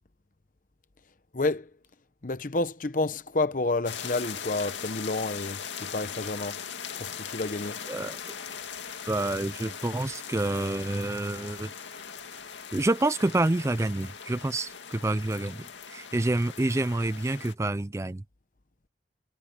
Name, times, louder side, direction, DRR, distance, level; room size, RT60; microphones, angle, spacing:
voice 1, 1.3-1.7 2.2-6.6 7.0-7.8, left 2 dB, 45° left, 0.9 m, -30 dB
sound 1, 3.8-17.5, left 7 dB, 80° left, 2.2 m, -40 dB
voice 2, 7.9-8.2 9.1-11.7 12.7-18.2, right 2 dB, 15° right, 0.4 m, -28 dB
head